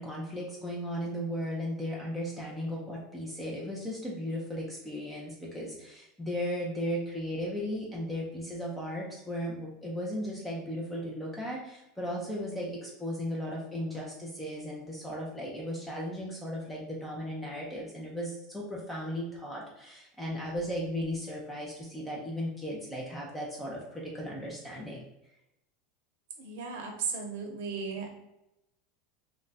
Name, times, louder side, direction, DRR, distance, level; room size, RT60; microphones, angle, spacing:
voice 1, 0.0-25.0, equal, 5° left, -4 dB, 0.5 m, -36 dB
voice 2, 26.4-28.1, right 5 dB, 70° right, 2 dB, 0.7 m, -35 dB
2.3 x 2.1 x 3.9 m, 0.88 s
supercardioid pair, 155°, 0 cm